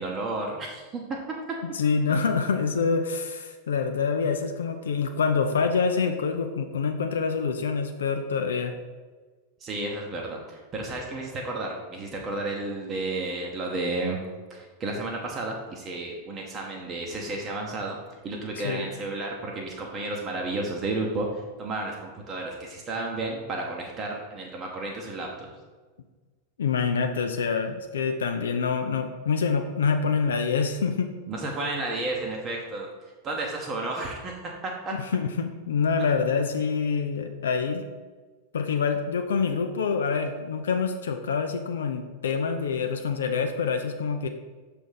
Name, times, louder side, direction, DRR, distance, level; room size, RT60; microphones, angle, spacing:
voice 1, 0.0-1.6 2.1-2.2 9.6-14.2 14.5-18.0 18.2-25.5 31.3-32.9 33.2-34.9, right 2 dB, 25° right, -1 dB, 0.9 m, -32 dB
voice 2, 1.7-8.7 18.6-18.9 26.6-31.1 35.0-37.8 38.5-44.3, left 5 dB, 65° left, 6 dB, 0.4 m, -26 dB
6.1 x 3.4 x 5.4 m, 1.4 s
figure-of-eight pair, 90°, 0 cm